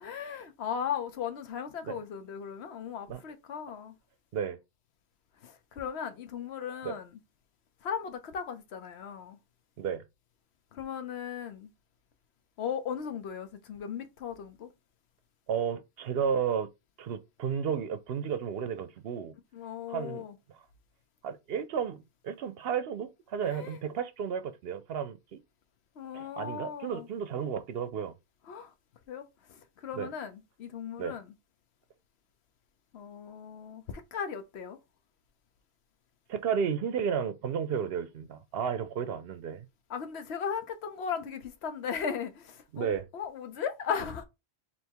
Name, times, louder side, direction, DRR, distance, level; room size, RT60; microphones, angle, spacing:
voice 1, 0.0-4.0 5.4-7.2 7.8-9.4 10.7-11.7 12.6-14.7 19.5-20.3 23.4-23.8 26.0-27.1 28.5-28.7 29.1-31.3 32.9-34.8 39.9-44.2, left 7 dB, 75° left, 1.0 m, -37 dB
voice 2, 15.5-16.7 17.0-19.3 19.9-20.2 21.2-25.4 26.1-28.1 30.0-30.1 31.0-31.1 36.3-39.7 42.7-43.0, right 7 dB, 65° right, 0.7 m, -32 dB
3.4 x 2.9 x 4.4 m
omnidirectional pair, 1.1 m